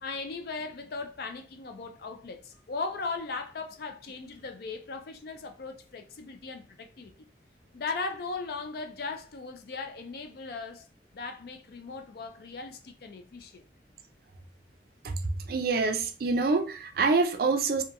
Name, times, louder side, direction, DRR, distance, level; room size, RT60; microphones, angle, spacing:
voice 1, 0.0-7.3 7.7-10.9 11.1-13.6, left 4 dB, 60° left, 0.4 m, -38 dB
voice 2, 15.0-17.8, right 4 dB, 55° right, 0.4 m, -26 dB
2.8 x 2.2 x 2.5 m
head